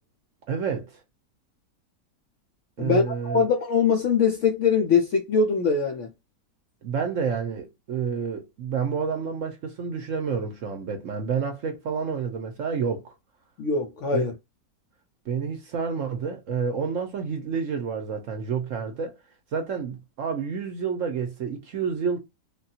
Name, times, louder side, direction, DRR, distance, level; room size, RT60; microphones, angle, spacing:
voice 1, 0.5-1.0 2.8-3.5 6.8-13.1 14.1-14.3 15.3-19.1 19.5-22.2, right 6 dB, 65° right, 0.8 m, -29 dB
voice 2, 2.8-6.1 13.6-14.3, left 5 dB, 70° left, 0.7 m, -22 dB
3.4 x 2.3 x 2.7 m
omnidirectional pair, 1.8 m